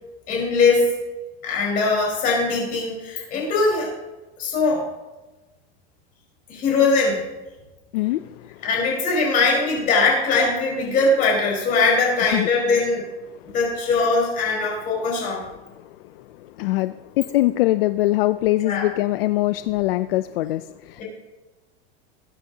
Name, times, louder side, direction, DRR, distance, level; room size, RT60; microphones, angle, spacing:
voice 1, 0.3-0.9 1.4-3.9 4.4-4.9 6.5-7.2 8.6-13.1 13.5-15.4 18.6-18.9 21.0-21.1, left 3 dB, 25° left, -3 dB, 4.4 m, -21 dB
voice 2, 7.9-8.6 12.3-12.5 13.3-13.5 15.7-21.0, left 17 dB, 70° left, 12 dB, 0.5 m, -23 dB
20.5 x 9.2 x 2.8 m, 1.1 s
supercardioid pair, 180°, 30 cm